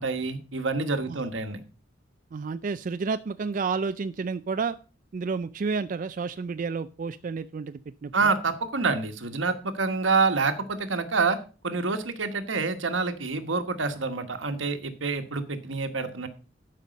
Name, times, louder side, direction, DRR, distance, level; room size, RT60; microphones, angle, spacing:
voice 1, 0.0-1.6 8.1-11.4 11.6-16.3, right 4 dB, 85° right, 8 dB, 1.3 m, -27 dB
voice 2, 2.3-4.8 5.1-8.3, right 5 dB, 45° right, 11 dB, 0.4 m, -30 dB
11.5 x 5.4 x 5.2 m, 0.35 s
head